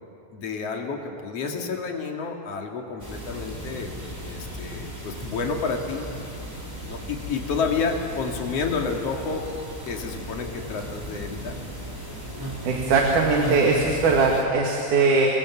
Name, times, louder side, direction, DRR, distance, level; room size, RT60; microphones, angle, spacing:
voice 1, 0.3-3.9 4.2-6.0 6.9-9.5 9.8-11.6, left 4 dB, 55° left, 2 dB, 3.2 m, -30 dB
sound 1, 3.0-14.4, equal, 5° right, 4.1 m, -36 dB
voice 2, 12.6-15.3, right 4 dB, 85° right, 0 dB, 3.6 m, -20 dB
29.0 x 22.5 x 7.2 m, 2.8 s
omnidirectional pair, 3.5 m